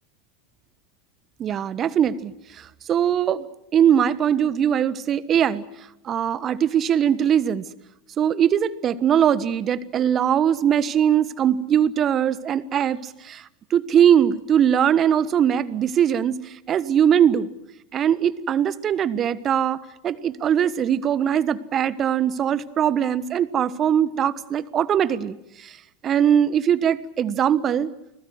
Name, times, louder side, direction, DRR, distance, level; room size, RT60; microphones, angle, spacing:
voice 1, 1.4-2.3 2.9-3.4 3.7-5.6 6.0-7.6 8.2-13.0 13.3-13.4 13.7-16.4 16.7-17.5 17.9-19.8 20.0-25.4 26.0-27.9, right 9 dB, 35° right, 16 dB, 1.3 m, -21 dB
30.0 x 20.0 x 8.0 m, 0.88 s
figure-of-eight pair, 85°, 0 cm